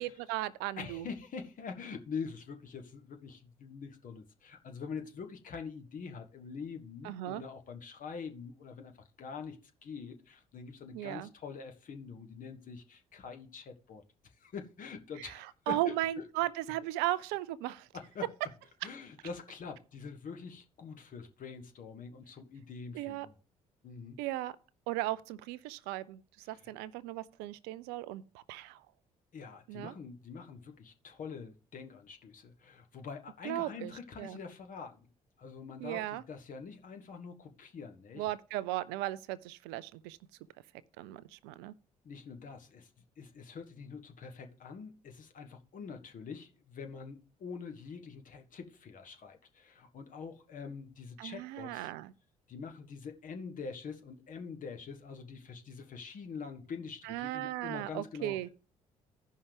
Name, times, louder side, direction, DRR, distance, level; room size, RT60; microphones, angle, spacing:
voice 1, 0.0-1.0 7.0-7.4 10.9-11.3 15.2-15.3 15.7-17.9 22.9-23.3 24.2-24.5 24.9-26.2 26.5-28.8 29.7-29.9 33.4-33.9 34.2-34.4 35.8-36.2 38.2-40.2 41.0-41.7 51.2-52.1 57.1-58.5, right 15 dB, 65° right, 0.4 m, -36 dB
voice 2, 0.8-8.9 9.2-14.0 14.4-16.2 17.9-18.3 18.8-23.4 23.8-24.2 26.4-26.7 29.3-35.1 35.4-38.3 42.0-42.9 43.2-51.9 52.5-58.4, left 5 dB, 45° left, 1.3 m, -45 dB
15.0 x 5.5 x 3.4 m
figure-of-eight pair, 45°, 18 cm